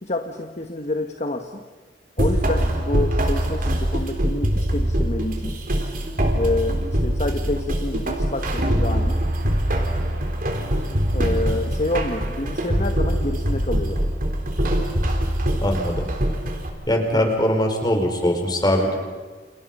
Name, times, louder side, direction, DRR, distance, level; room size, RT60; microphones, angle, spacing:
voice 1, 0.0-1.6 2.2-5.5 6.3-9.2 11.1-14.0 17.1-17.4, left 2 dB, 40° left, 5 dB, 1.5 m, -28 dB
sound 1, 2.2-16.7, equal, 55° right, 4.0 m, -23 dB
voice 2, 15.6-16.1 16.9-19.0, equal, 25° left, 3 dB, 5.0 m, -21 dB
30.0 x 30.0 x 5.6 m, 1.3 s
head